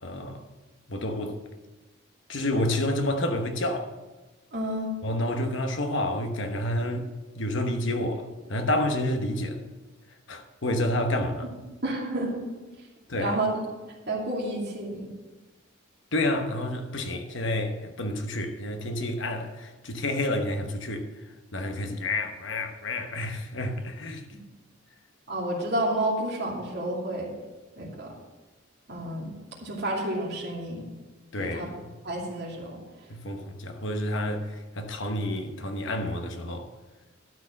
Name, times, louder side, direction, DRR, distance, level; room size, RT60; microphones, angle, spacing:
voice 1, 0.0-0.4 0.9-1.4 2.3-3.9 5.0-7.1 7.4-9.6 10.3-11.5 13.1-13.4 16.1-21.1 21.5-24.2 31.3-31.7 33.1-36.7, left 1 dB, 65° left, 1.1 m, -29 dB
voice 2, 4.5-4.9 11.8-12.4 12.8-12.9 13.1-13.5 14.1-15.1 25.3-27.3 27.8-28.1 28.9-29.3 29.6-30.8 31.4-31.7 32.0-33.1, right 1 dB, 55° right, 2.6 m, -30 dB
12.5 x 4.7 x 7.4 m
head